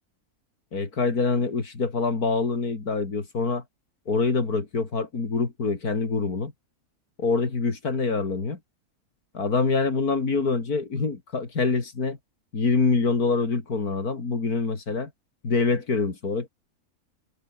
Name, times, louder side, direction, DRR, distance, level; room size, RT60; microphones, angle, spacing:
voice 1, 0.7-3.6 4.1-6.5 7.2-8.6 9.3-12.2 12.5-15.1 15.4-16.5, left 4 dB, 85° left, 3.6 m, -25 dB
omnidirectional pair, 1.6 m